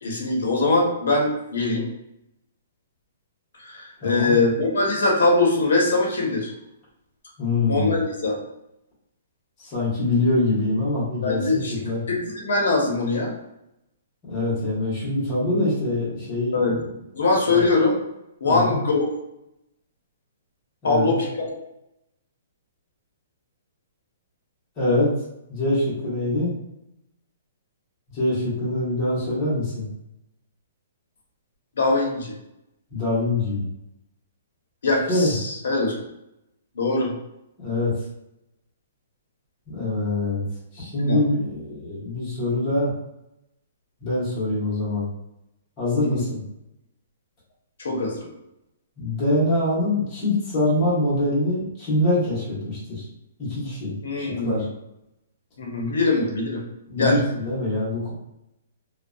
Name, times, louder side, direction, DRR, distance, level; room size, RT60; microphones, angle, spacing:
voice 1, 0.0-1.8 3.6-6.5 7.6-8.4 11.2-13.3 16.5-16.8 17.1-18.0 18.4-19.1 20.8-21.5 31.8-32.3 34.8-36.0 36.8-37.1 40.9-41.2 45.9-46.3 47.8-48.3 54.0-54.7 55.6-56.6 57.0-57.2, left 3 dB, 75° left, -1 dB, 0.7 m, -22 dB
voice 2, 4.0-4.4 7.4-7.9 9.6-12.0 14.3-16.6 17.5-17.6 18.4-18.8 20.8-21.1 24.8-25.1 25.5-26.5 28.1-29.9 32.9-33.6 35.1-35.4 37.6-37.9 39.7-40.4 40.7-42.9 44.0-45.1 45.8-46.4 49.0-53.0 53.4-54.6 56.9-58.1, left 2 dB, 15° left, -9 dB, 0.9 m, -24 dB
2.6 x 2.1 x 2.2 m, 0.86 s
hypercardioid pair, 180°, 0 cm